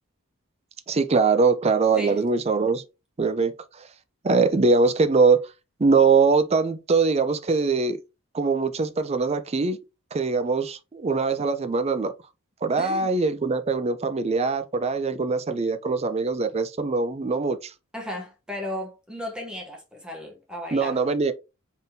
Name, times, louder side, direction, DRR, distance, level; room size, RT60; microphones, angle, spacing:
voice 1, 0.9-2.8 3.2-3.9 4.2-5.5 5.8-8.0 8.3-9.8 10.1-12.1 12.6-17.7 20.7-21.3, right 4 dB, 30° right, 0.4 m, -22 dB
voice 2, 12.8-13.1 17.9-21.0, left 1 dB, 5° right, 0.8 m, -35 dB
3.9 x 3.7 x 2.6 m
head